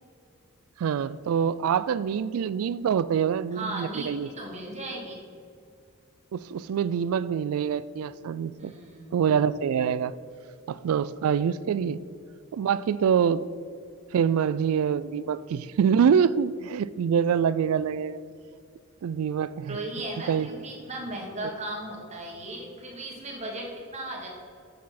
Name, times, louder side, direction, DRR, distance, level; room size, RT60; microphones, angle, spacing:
voice 1, 0.8-4.3 6.3-8.7 9.1-10.1 10.7-12.0 12.5-13.5 14.1-18.2 19.0-19.8 20.3-20.5, right 7 dB, 85° right, 18 dB, 0.3 m, -25 dB
voice 2, 3.5-5.2 8.6-9.3 19.6-24.3, right 1 dB, 30° right, -1 dB, 1.5 m, -36 dB
7.3 x 6.1 x 4.2 m, 2.3 s
head